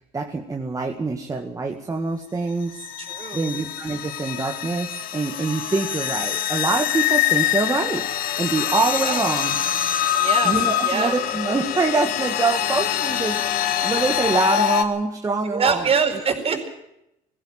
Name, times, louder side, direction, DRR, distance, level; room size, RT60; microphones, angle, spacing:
voice 1, 0.0-2.9 3.3-8.1 8.4-9.6 10.4-15.9 16.5-16.7, right 3 dB, 20° right, 3 dB, 1.9 m, -25 dB
sound 1, 2.8-14.8, left 11 dB, 65° left, 1.9 m, -24 dB
voice 2, 3.0-3.5 9.0-9.2 10.2-10.5 10.8-11.1 15.4-16.7, right 6 dB, 40° right, 5 dB, 4.7 m, -24 dB
18.5 x 15.5 x 9.0 m, 0.83 s
cardioid pair, 100°, 16 cm